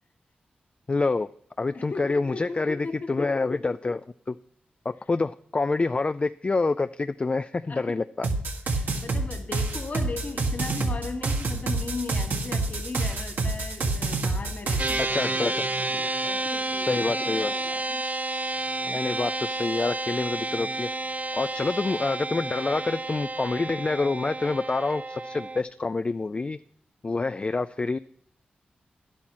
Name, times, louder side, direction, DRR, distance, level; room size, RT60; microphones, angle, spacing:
voice 1, 0.9-1.3 1.6-4.0 4.3-4.4 4.9-8.3 15.0-15.6 16.8-17.5 18.8-20.9 21.3-26.6 27.0-28.0, left 3 dB, 35° left, 13 dB, 0.4 m, -27 dB
voice 2, 1.7-3.3 3.8-3.9 7.7-8.0 8.7-18.0, left 4 dB, 50° left, 6 dB, 1.6 m, -38 dB
sound 1, 8.2-15.0, right 3 dB, 70° right, 1.7 m, -27 dB
sound 2, 14.8-25.6, right 2 dB, 45° right, 0.7 m, -30 dB
11.0 x 8.5 x 6.1 m, 0.66 s
cardioid pair, 55°, 3 cm